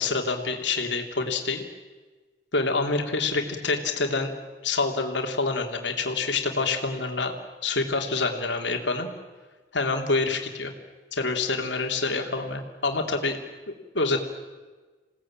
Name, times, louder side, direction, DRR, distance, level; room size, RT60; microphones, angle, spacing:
voice 1, 0.0-1.6 2.5-4.3 4.6-7.3 7.6-9.1 9.7-10.7 11.1-13.4 13.9-14.2, left 3 dB, 85° left, 4 dB, 3.1 m, -26 dB
27.5 x 18.0 x 8.9 m, 1.3 s
head